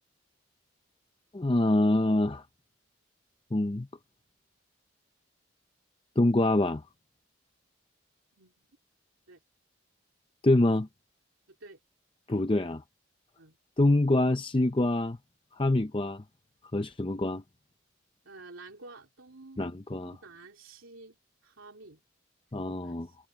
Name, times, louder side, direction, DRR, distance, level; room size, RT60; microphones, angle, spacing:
voice 1, 1.3-2.4 3.5-3.9 6.2-6.8 10.4-10.9 12.3-12.8 13.8-15.2 15.6-16.2 16.7-17.4 19.6-20.1 22.5-23.1, left 1 dB, 25° left, 0.6 m, -25 dB
voice 2, 18.2-21.2 21.4-22.0 22.7-23.2, right 3 dB, 90° right, 3.2 m, -50 dB
head